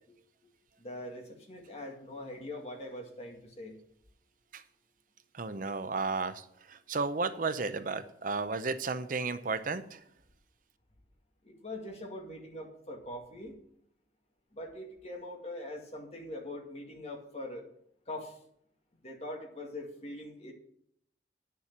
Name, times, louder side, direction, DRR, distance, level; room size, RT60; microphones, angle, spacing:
voice 1, 0.8-3.7 11.4-13.6 14.5-17.7 18.1-18.4 19.0-20.5, left 1 dB, 35° left, 2 dB, 2.1 m, -42 dB
voice 2, 5.3-10.0, right 4 dB, 50° right, 11 dB, 0.6 m, -33 dB
9.7 x 6.9 x 7.3 m, 0.68 s
head